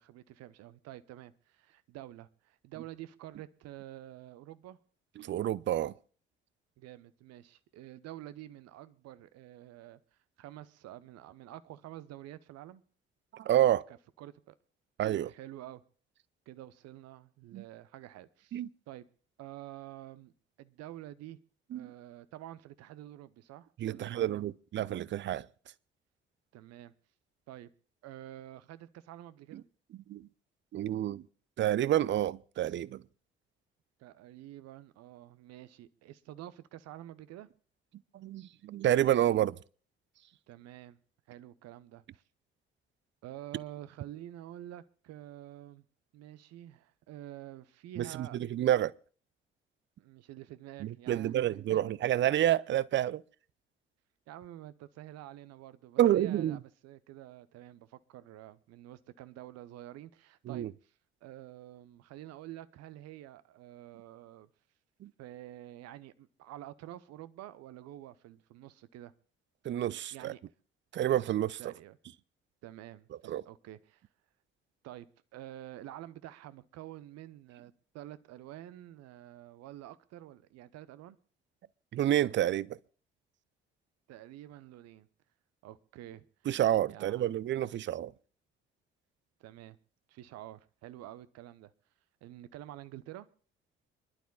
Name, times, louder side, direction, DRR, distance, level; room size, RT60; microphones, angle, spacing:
voice 1, 0.0-4.8 6.8-10.0 10.4-12.8 13.9-14.5 15.2-15.8 16.5-18.6 18.9-19.1 19.4-20.3 20.6-21.4 21.7-24.4 26.5-26.9 27.5-27.7 28.0-29.6 34.0-37.5 40.5-41.0 41.3-42.2 43.2-45.8 46.1-48.4 50.0-51.8 54.3-60.9 61.2-64.5 65.2-69.1 70.1-70.4 71.6-72.0 72.6-74.0 74.8-75.1 75.3-81.2 84.1-85.1 85.6-86.2 86.9-87.3 89.4-89.8 90.1-91.7 92.2-93.3, right 13 dB, 55° right, 0.9 m, -48 dB
voice 2, 5.2-5.9 13.3-13.8 15.0-15.3 17.5-17.6 18.5-18.7 21.7-21.9 23.8-25.5 29.5-29.6 30.1-30.3 30.7-31.2 31.6-33.0 38.1-39.6 48.0-48.9 50.8-53.2 56.0-56.6 60.5-60.7 65.0-65.1 69.6-70.3 70.9-71.6 73.3-73.4 81.9-82.8 86.5-88.1, right 12 dB, 40° right, 0.6 m, -29 dB
27.5 x 11.5 x 2.3 m
figure-of-eight pair, 45°, 30 cm